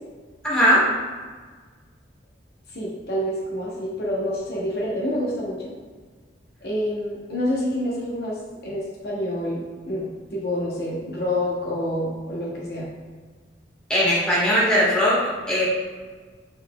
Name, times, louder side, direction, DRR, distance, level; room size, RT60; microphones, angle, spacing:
voice 1, 0.4-0.8 13.9-15.2 15.5-15.6, equal, 5° left, -9 dB, 1.4 m, -19 dB
voice 2, 2.7-5.7 6.6-12.9, left 1 dB, 60° left, -4 dB, 0.8 m, -28 dB
5.4 x 3.8 x 2.2 m, 1.5 s
head